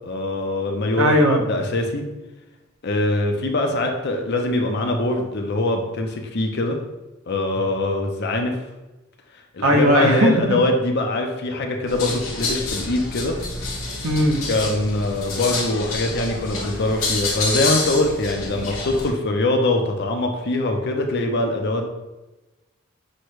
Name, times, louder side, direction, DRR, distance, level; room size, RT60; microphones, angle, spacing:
voice 1, 0.0-2.1 2.8-6.8 7.3-8.6 9.5-13.4 14.5-21.9, left 2 dB, 50° left, 3 dB, 0.6 m, -23 dB
voice 2, 1.0-1.4 9.6-10.3 14.0-14.4, equal, 75° right, 1 dB, 0.7 m, -17 dB
sound 1, 11.9-19.1, left 3 dB, 75° left, 1.0 m, -28 dB
6.3 x 2.1 x 3.1 m, 1.1 s
head